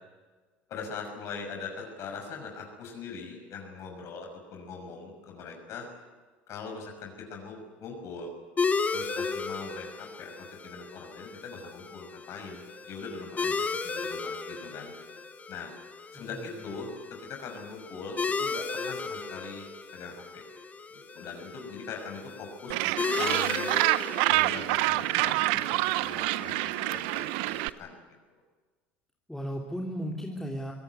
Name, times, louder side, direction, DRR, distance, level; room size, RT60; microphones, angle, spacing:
voice 1, 0.7-5.9 6.5-8.3 8.9-10.3 10.6-13.5 13.8-14.9 15.5-15.7 16.1-16.9 17.3-19.7 19.9-20.4 20.9-23.8 24.3-28.0, left 4 dB, 55° left, 2 dB, 6.0 m, -41 dB
sound 1, 8.6-27.7, left 4 dB, 25° left, 2.2 m, -35 dB
voice 2, 16.1-16.7 29.3-30.7, equal, 5° left, -1 dB, 3.2 m, -36 dB
Gull seagull, 22.7-27.7, right 19 dB, 70° right, 0.7 m, -27 dB
24.5 x 18.0 x 9.5 m, 1.4 s
hypercardioid pair, 75°, 6 cm